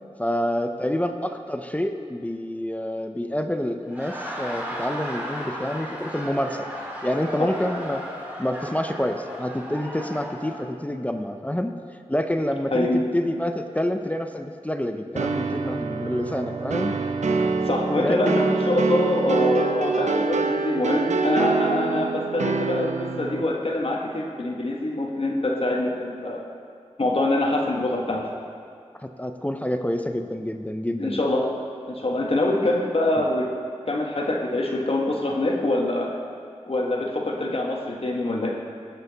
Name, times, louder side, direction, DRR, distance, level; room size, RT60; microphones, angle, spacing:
voice 1, 0.2-6.7 7.0-8.0 8.4-11.7 12.1-16.9 17.9-18.4 29.0-31.2, left 1 dB, 10° left, 6 dB, 0.5 m, -27 dB
Laughter, 3.8-10.6, equal, 10° right, 2.4 m, -35 dB
sound 1, 15.2-23.4, right 4 dB, 80° right, 0.6 m, -25 dB
voice 2, 17.4-26.4 27.0-28.3 31.0-31.5 31.8-33.5 33.9-36.2 36.7-38.5, left 2 dB, 55° left, 0 dB, 1.2 m, -25 dB
15.5 x 6.8 x 4.0 m, 2.3 s
wide cardioid pair, 60°, 12 cm